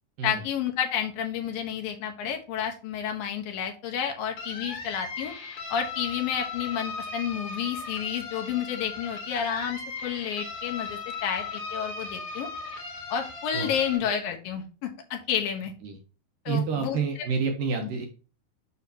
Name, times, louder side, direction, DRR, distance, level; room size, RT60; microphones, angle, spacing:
voice 1, 0.2-5.3 5.7-12.5 13.1-15.7 16.5-17.0 17.8-17.9, left 8 dB, 70° left, 3 dB, 2.5 m, -30 dB
sound 1, 4.4-14.0, left 4 dB, 50° left, 1.9 m, -37 dB
voice 2, 16.5-18.1, right 5 dB, 70° right, 4 dB, 2.3 m, -28 dB
7.0 x 6.3 x 2.7 m, 0.35 s
omnidirectional pair, 4.6 m